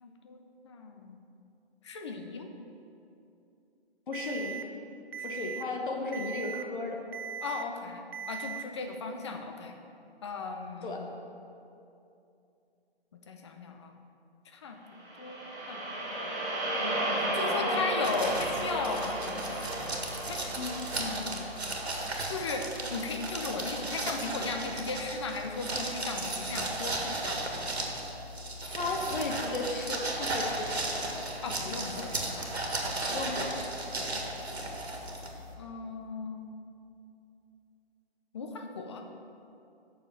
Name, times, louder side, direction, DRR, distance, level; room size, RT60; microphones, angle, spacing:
voice 1, 0.0-1.2 1.8-2.5 5.1-5.3 7.4-9.7 10.2-11.1 13.3-14.0 14.5-14.8 15.2-15.8 16.8-19.6 20.3-20.5 21.0-21.5 22.3-27.4 31.4-32.5 32.8-33.2 34.1-34.5 35.6-36.5 38.3-39.1, left 4 dB, 25° left, 4 dB, 0.6 m, -37 dB
voice 2, 4.1-4.6 5.2-7.0 10.8-11.0 16.8-17.0 17.5-17.9 20.5-20.8 28.7-30.9 33.1-33.6 34.0-34.1, left 3 dB, 50° left, 1 dB, 1.1 m, -35 dB
Alarm, 4.1-4.6 5.1-5.6 6.1-6.6 7.1-7.6 8.1-8.6, right 8 dB, 65° right, 0.6 m, -38 dB
sound 1, 15.0-23.3, right 1 dB, 30° right, 1.9 m, -34 dB
sound 2, 18.0-35.5, right 2 dB, 80° right, 1.7 m, -35 dB
7.9 x 6.5 x 5.7 m, 2.7 s
figure-of-eight pair, 150°, 32 cm